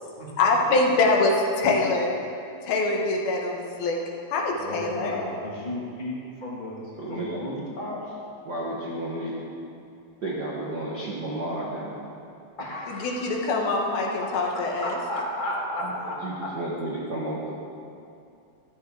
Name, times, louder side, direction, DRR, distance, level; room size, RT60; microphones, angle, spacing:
voice 1, 0.4-2.1 2.6-4.0 4.3-5.2 12.9-15.0, left 3 dB, 85° left, 0 dB, 3.3 m, -24 dB
voice 2, 4.6-6.8 7.1-8.2 12.6-13.3 14.5-16.5, left 1 dB, 15° left, -5 dB, 1.8 m, -33 dB
voice 3, 7.0-7.5 8.4-9.4 10.2-12.1 15.8-15.9 16.2-17.5, right 1 dB, 50° right, -6 dB, 1.2 m, -32 dB
14.0 x 13.0 x 3.9 m, 2.5 s
omnidirectional pair, 4.1 m